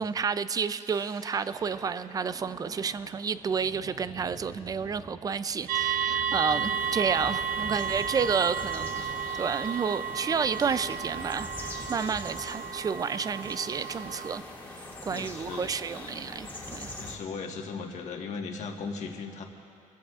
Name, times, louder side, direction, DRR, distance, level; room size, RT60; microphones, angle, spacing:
voice 1, 0.0-9.0 9.4-14.4 14.7-16.9, right 6 dB, 25° right, 14 dB, 0.4 m, -30 dB
sound 1, 0.7-11.8, right 2 dB, 55° right, 3.0 m, -50 dB
sound 2, 5.7-14.4, right 8 dB, 75° right, 0.6 m, -33 dB
sound 3, 6.0-17.2, left 2 dB, 15° left, 2.1 m, -43 dB
voice 2, 15.1-15.7 16.9-19.4, left 5 dB, 55° left, 2 dB, 1.5 m, -37 dB
25.0 x 15.0 x 2.5 m, 2.7 s
cardioid pair, 140°, 14 cm